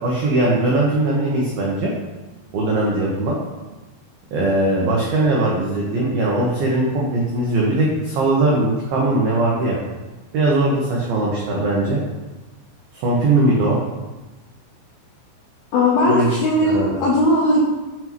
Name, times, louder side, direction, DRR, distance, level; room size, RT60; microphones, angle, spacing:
voice 1, 0.0-1.9 2.5-3.4 4.3-9.8 10.3-12.0 12.9-13.8 16.1-16.3 16.6-17.0, right 2 dB, 90° right, -4 dB, 2.1 m, -20 dB
voice 2, 15.7-17.6, left 1 dB, 80° left, -5 dB, 2.2 m, -17 dB
7.5 x 5.7 x 3.1 m, 1.2 s
omnidirectional pair, 5.7 m